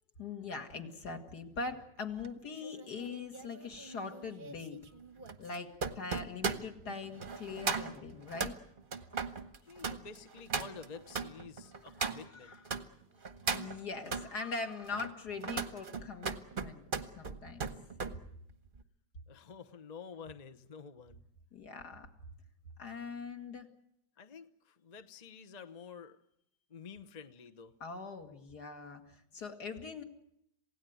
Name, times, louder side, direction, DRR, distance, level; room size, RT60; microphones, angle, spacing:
voice 1, 0.2-4.8 5.4-8.5 12.0-12.6 13.5-16.8 17.2-17.7 21.5-22.1 22.8-23.7 27.8-30.0, left 4 dB, 55° left, 5 dB, 2.7 m, -42 dB
sound 1, 2.2-12.8 13.2-14.3 14.8-18.2 18.5-18.8, right 5 dB, 35° right, 1.1 m, -38 dB
voice 2, 9.6-12.5 19.3-21.2 24.2-26.2 26.7-27.7, left 6 dB, 35° left, 8 dB, 0.7 m, -50 dB
27.5 x 17.0 x 9.4 m, 0.76 s
omnidirectional pair, 2.0 m